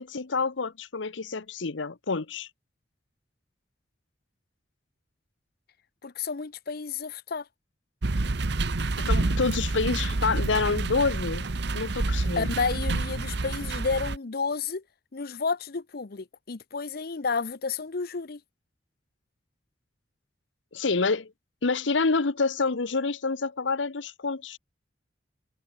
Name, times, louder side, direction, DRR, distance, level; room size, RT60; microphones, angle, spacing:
voice 1, 0.0-2.5 9.0-11.5 11.7-12.5 20.7-21.3 21.6-24.6, left 4 dB, 85° left, 1.0 m, -27 dB
voice 2, 6.0-7.5 12.4-14.8 15.1-18.4, left 4 dB, 55° left, 0.7 m, -31 dB
sound 1, 8.0-14.2, right 2 dB, 65° right, 1.0 m, -28 dB
head